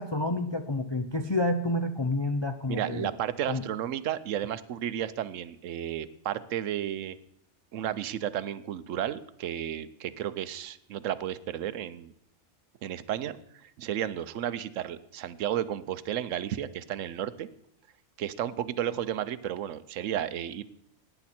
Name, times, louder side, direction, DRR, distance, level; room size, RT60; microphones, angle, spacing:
voice 1, 0.0-3.1 3.5-3.6, left 2 dB, 40° left, 7 dB, 0.4 m, -29 dB
voice 2, 2.7-7.2 7.7-12.1 12.8-17.5 18.2-20.6, right 10 dB, 75° right, 15 dB, 1.0 m, -33 dB
17.0 x 9.9 x 4.3 m, 0.73 s
omnidirectional pair, 1.3 m